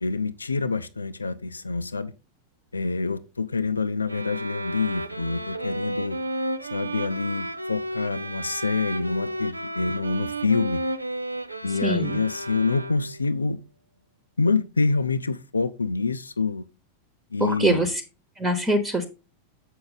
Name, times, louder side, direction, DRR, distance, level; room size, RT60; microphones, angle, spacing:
voice 1, 0.0-2.1 2.7-6.2 6.7-10.8 11.6-13.6 14.4-16.6 17.3-17.8, left 4 dB, 80° left, 0.5 m, -26 dB
sound 1, 4.1-13.3, right 1 dB, 85° right, 0.5 m, -32 dB
voice 2, 11.8-12.2 17.4-18.0 18.4-19.1, right 1 dB, 15° right, 1.2 m, -23 dB
7.7 x 6.4 x 3.9 m
figure-of-eight pair, 90°, 0 cm